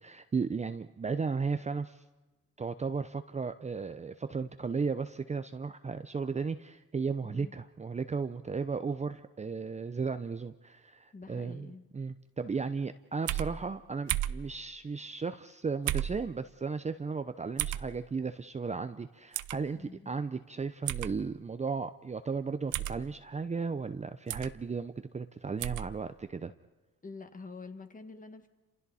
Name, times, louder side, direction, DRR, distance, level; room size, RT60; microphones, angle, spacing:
voice 1, 0.0-2.0 2.6-26.5, right 5 dB, 25° right, 9 dB, 0.7 m, -35 dB
voice 2, 7.2-7.5 11.1-11.8 19.7-20.1 27.0-28.5, left 3 dB, 25° left, 8 dB, 1.7 m, -47 dB
sound 1, 13.3-13.5 14.1-14.4 15.9-16.2 17.6-17.8 19.3-19.6 20.9-21.1 22.7-23.0 24.3-24.5 25.6-25.9, right 14 dB, 80° right, 0.7 m, -32 dB
29.5 x 27.5 x 4.2 m, 1.2 s
cardioid pair, 90°, 30 cm